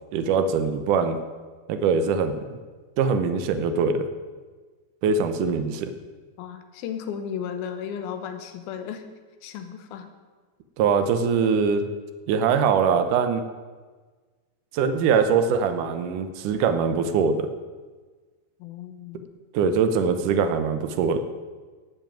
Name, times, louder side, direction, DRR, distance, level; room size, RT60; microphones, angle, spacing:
voice 1, 0.1-1.2 1.7-2.6 3.0-4.1 5.0-5.9 10.8-11.9 12.3-13.4 14.7-17.5 19.5-21.2, right 6 dB, 80° right, 8 dB, 1.8 m, -22 dB
voice 2, 6.4-9.0 9.4-10.1 18.6-19.3, left 8 dB, 70° left, 7 dB, 2.8 m, -34 dB
12.5 x 7.5 x 9.1 m, 1.4 s
omnidirectional pair, 4.8 m